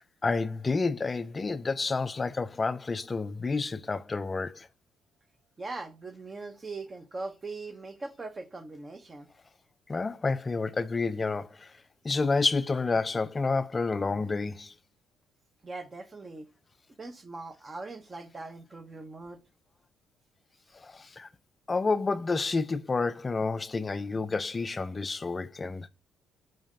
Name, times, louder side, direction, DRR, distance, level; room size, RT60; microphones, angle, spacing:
voice 1, 0.2-4.7 9.9-11.7 12.0-14.7 20.8-21.3 21.7-25.9, left 4 dB, 20° left, 0.4 m, -29 dB
voice 2, 5.6-9.3 15.6-16.5 17.0-19.4, right 3 dB, 20° right, 0.7 m, -40 dB
5.5 x 5.4 x 3.7 m
cardioid pair, 140°, 0 cm